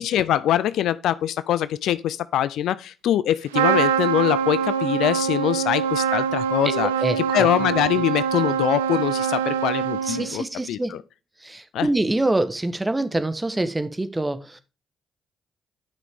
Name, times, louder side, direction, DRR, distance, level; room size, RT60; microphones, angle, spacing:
voice 1, 0.0-6.9 7.2-11.0 11.7-11.9, left 11 dB, 70° left, 0.4 m, -23 dB
Trumpet, 3.5-10.4, right 7 dB, 85° right, 0.5 m, -24 dB
voice 2, 6.6-7.5 10.1-11.0 11.4-14.6, right 2 dB, 15° right, 1.3 m, -25 dB
10.5 x 6.1 x 3.6 m
hypercardioid pair, 45°, 0 cm